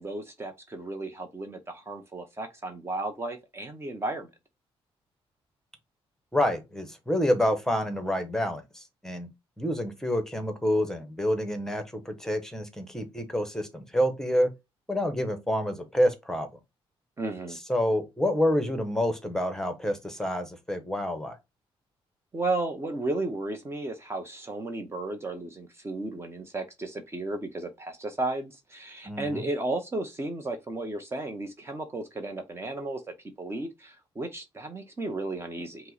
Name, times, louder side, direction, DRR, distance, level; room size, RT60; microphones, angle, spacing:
voice 1, 0.0-4.3 17.2-17.6 22.3-33.0 33.4-35.9, right 2 dB, 25° right, 0.7 m, -34 dB
voice 2, 6.3-9.3 9.6-14.5 14.9-16.5 17.7-21.4 29.0-29.4, equal, 5° left, 0.9 m, -28 dB
5.3 x 2.1 x 3.9 m
cardioid pair, 115°, 10 cm